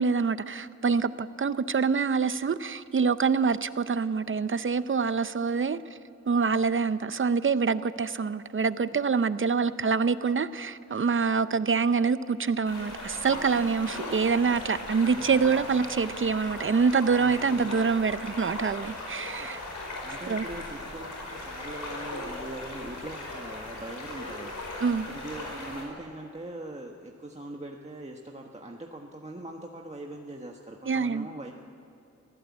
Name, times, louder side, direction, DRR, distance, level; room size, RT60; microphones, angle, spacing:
voice 1, 0.0-5.8 6.3-19.6 20.3-20.4 24.8-25.1 30.9-31.3, right 5 dB, 40° right, 0.7 m, -26 dB
sound 1, 12.6-25.8, left 2 dB, 75° left, 5.1 m, -38 dB
sound 2, 13.1-17.1, right 3 dB, 60° right, 1.9 m, -52 dB
voice 2, 17.2-17.7 19.4-24.7 25.1-31.5, right 1 dB, 20° right, 1.4 m, -42 dB
25.0 x 16.0 x 8.5 m
wide cardioid pair, 90°, 30 cm